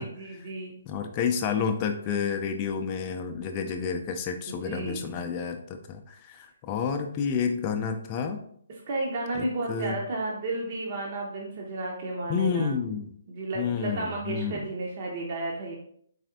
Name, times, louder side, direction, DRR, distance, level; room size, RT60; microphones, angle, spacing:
voice 1, 0.0-0.7 4.6-5.0 8.9-12.7 13.3-15.8, right 2 dB, 45° right, -2 dB, 0.7 m, -32 dB
voice 2, 0.9-8.4 9.3-10.0 12.3-13.0 13.6-14.6, left 6 dB, 30° left, 4 dB, 0.4 m, -30 dB
4.1 x 3.3 x 2.6 m, 0.64 s
hypercardioid pair, 150°, 0 cm